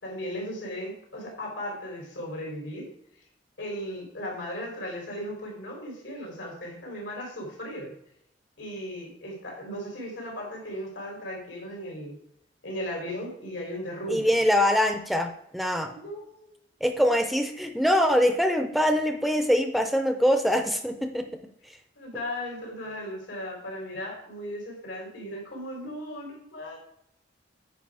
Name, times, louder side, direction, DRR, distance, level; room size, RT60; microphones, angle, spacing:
voice 1, 0.0-2.9 3.6-7.9 8.6-12.2 12.6-14.3 15.9-16.5 22.0-26.8, equal, 85° left, -1 dB, 3.6 m, -36 dB
voice 2, 14.1-16.0 16.8-21.3 21.7-21.8, equal, ahead, 6 dB, 0.5 m, -23 dB
9.4 x 4.8 x 4.8 m, 0.72 s
head